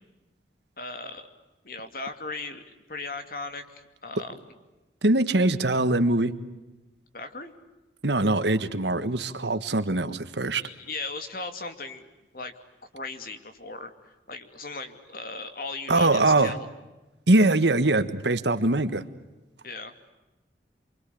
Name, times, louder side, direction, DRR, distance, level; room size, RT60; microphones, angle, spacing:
voice 1, 0.8-1.3 1.6-4.4 7.1-7.5 10.6-12.6 12.9-13.9 14.3-16.7 19.6-19.9, left 3 dB, 55° left, 8 dB, 2.6 m, -37 dB
voice 2, 5.0-6.3 8.0-10.6 15.9-16.5 17.3-19.0, right 2 dB, 75° right, 11 dB, 1.6 m, -22 dB
28.5 x 24.5 x 8.6 m, 1.1 s
head